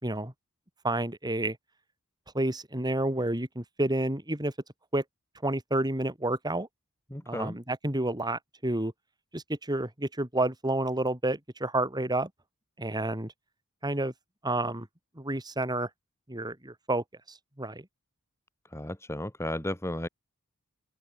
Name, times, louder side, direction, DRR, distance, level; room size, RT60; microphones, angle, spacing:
voice 1, 0.0-0.3 0.8-1.6 2.3-4.5 4.9-5.0 5.4-6.7 7.3-8.9 9.3-12.3 12.8-13.3 13.8-14.1 14.4-14.9 15.2-15.9 16.3-17.9, right 1 dB, 20° right, 3.8 m, -30 dB
voice 2, 7.1-7.5 18.7-20.1, left 1 dB, 10° left, 2.2 m, -34 dB
open air
head